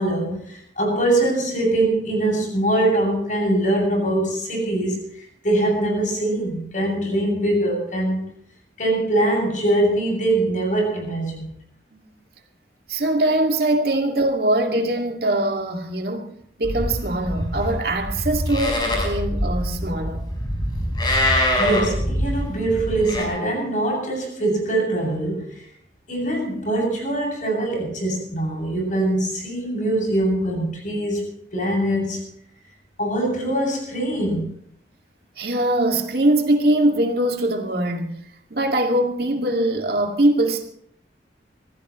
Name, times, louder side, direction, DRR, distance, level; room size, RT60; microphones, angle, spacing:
voice 1, 0.0-8.2 8.8-11.6 21.6-25.6 26.1-32.2 33.0-34.5, right 1 dB, 45° left, 7.3 m, -23 dB
voice 2, 12.9-16.3 16.6-20.2 35.4-38.1 38.5-40.6, right 1 dB, 60° right, 2.3 m, -22 dB
Livestock farm animals working animals, 16.6-23.2, left 1 dB, 25° left, 4.9 m, -24 dB
25.5 x 15.5 x 3.1 m
head